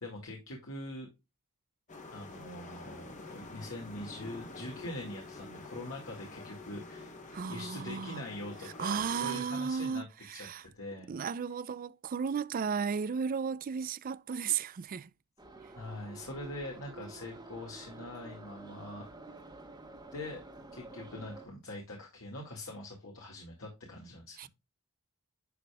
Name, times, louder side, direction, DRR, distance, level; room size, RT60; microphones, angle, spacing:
voice 1, 0.0-1.1 2.1-7.1 7.5-11.1 15.8-19.1 20.1-20.4 20.7-24.5, left 1 dB, 65° left, 2.0 m, -43 dB
sound 1, 1.9-9.4, left 3 dB, 35° left, 1.4 m, -47 dB
voice 2, 7.3-8.2 8.8-10.6 11.1-15.1 24.4-24.5, right 6 dB, 40° right, 0.3 m, -34 dB
Subway metro underground, 15.4-21.5, right 3 dB, 20° right, 1.3 m, -49 dB
10.5 x 5.1 x 2.3 m
head